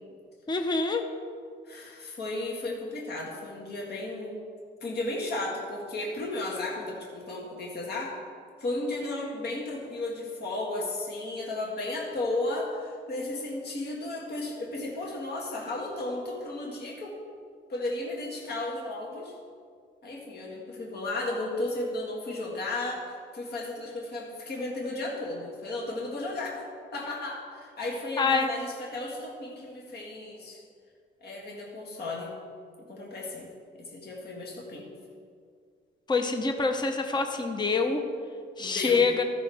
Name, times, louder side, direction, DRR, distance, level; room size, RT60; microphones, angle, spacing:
voice 1, 0.5-1.1 28.2-28.5 36.1-38.0 38.6-39.2, left 4 dB, 20° left, 6 dB, 0.8 m, -26 dB
voice 2, 1.7-4.4 4.8-8.1 8.6-17.2 17.7-19.3 20.0-26.6 26.9-30.6 31.2-32.3 32.8-33.5 33.8-34.9 38.6-39.1, left 2 dB, 55° left, -2 dB, 1.8 m, -34 dB
14.0 x 6.1 x 3.5 m, 2.1 s
cardioid pair, 90°, 20 cm